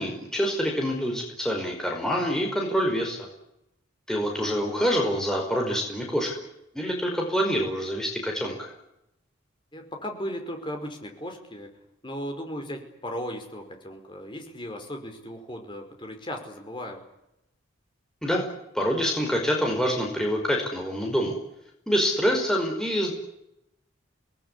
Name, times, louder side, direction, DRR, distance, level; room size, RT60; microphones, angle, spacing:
voice 1, 0.0-3.2 4.1-6.4 6.7-8.7 18.2-18.5 18.7-21.4 21.9-23.1, equal, 5° left, 0 dB, 5.1 m, -26 dB
voice 2, 9.7-11.8 12.0-17.0, equal, 25° left, 4 dB, 5.1 m, -36 dB
27.5 x 19.5 x 9.9 m, 0.85 s
head